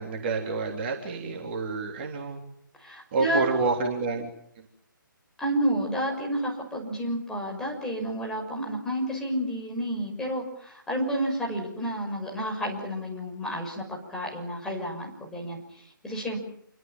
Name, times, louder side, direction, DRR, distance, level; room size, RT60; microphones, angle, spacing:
voice 1, 0.0-2.4 3.1-4.3 4.6-4.7, right 4 dB, 30° right, 1 dB, 3.4 m, -28 dB
voice 2, 2.8-3.4 5.4-16.4, equal, 5° left, -2 dB, 6.2 m, -30 dB
28.5 x 24.5 x 7.4 m, 0.67 s
figure-of-eight pair, 150°, 11 cm